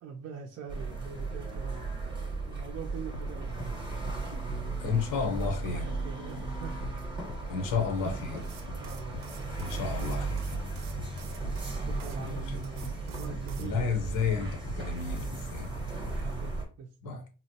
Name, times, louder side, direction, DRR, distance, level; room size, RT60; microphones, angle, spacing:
voice 1, 0.0-6.8 8.0-9.7 10.9-13.9 14.7-17.3, right 6 dB, 50° right, 0.5 m, -44 dB
sound 1, 0.7-16.6, right 3 dB, 15° right, 0.8 m, -36 dB
sound 2, 3.1-13.0 13.3-16.3, left 3 dB, 50° left, 0.4 m, -44 dB
voice 2, 4.8-5.9 7.5-8.4 9.6-10.4 12.2-12.6 13.6-15.7 17.0-17.2, left 5 dB, 85° left, 0.8 m, -32 dB
sound 3, 8.4-12.2 12.6-13.7, right 7 dB, 85° right, 0.7 m, -51 dB
4.1 x 2.0 x 2.7 m
cardioid pair, 120°, 32 cm